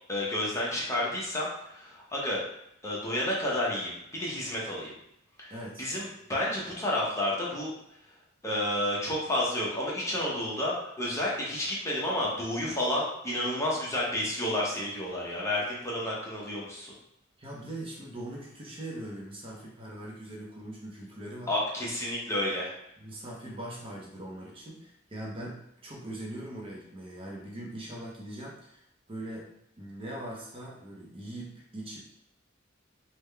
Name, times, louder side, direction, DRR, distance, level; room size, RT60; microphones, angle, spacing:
voice 1, 0.1-2.4 2.8-4.9 5.4-5.5 5.8-7.7 8.4-16.9 21.5-22.8, left 1 dB, 15° left, -5 dB, 0.7 m, -30 dB
voice 2, 5.5-5.9 17.4-21.5 23.0-29.5 29.8-32.0, right 1 dB, 30° right, -3 dB, 0.7 m, -41 dB
3.4 x 2.2 x 3.3 m, 0.76 s
head